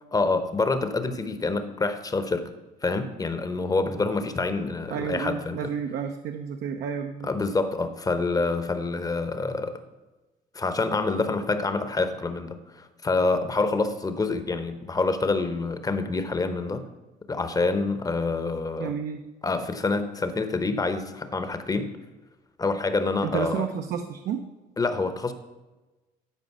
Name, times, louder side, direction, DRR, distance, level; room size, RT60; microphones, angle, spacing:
voice 1, 0.1-2.5 2.8-5.6 7.2-9.8 10.5-16.8 17.3-18.9 19.4-21.9 22.6-23.7 24.8-25.3, left 3 dB, 20° left, 10 dB, 0.9 m, -27 dB
voice 2, 4.9-7.3 18.8-19.2 23.2-24.4, right 7 dB, 70° right, 5 dB, 0.7 m, -31 dB
12.5 x 5.1 x 5.5 m, 1.1 s
cardioid pair, 110°, 17 cm